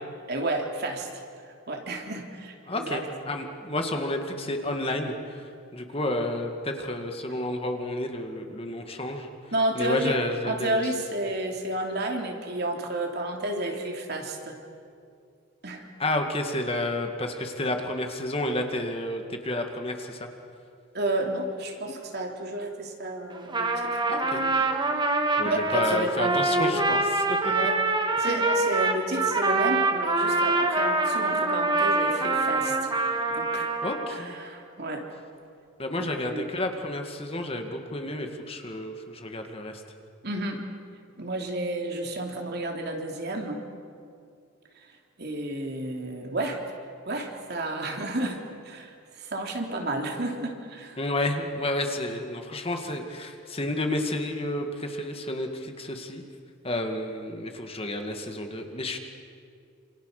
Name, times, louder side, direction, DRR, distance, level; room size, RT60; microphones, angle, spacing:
voice 1, 0.3-1.2 1.7-3.0 7.3-7.4 9.5-10.2 10.4-14.6 15.6-15.8 20.9-24.0 24.4-24.6 25.4-26.8 27.4-27.8 28.2-32.7 33.3-33.7 34.1-35.1 36.0-36.5 40.2-40.6 41.2-43.6 45.2-46.6 47.1-51.0, right 1 dB, 50° right, 2 dB, 3.2 m, -31 dB
voice 2, 2.7-5.4 5.7-9.3 9.8-10.8 16.0-20.3 24.1-24.4 25.4-27.5 33.8-34.4 35.8-39.8 51.0-56.2 56.6-59.0, left 1 dB, 30° left, 4 dB, 2.1 m, -30 dB
Trumpet, 23.3-34.2, right 2 dB, 20° right, 1.8 m, -25 dB
28.0 x 27.5 x 6.7 m, 2.4 s
head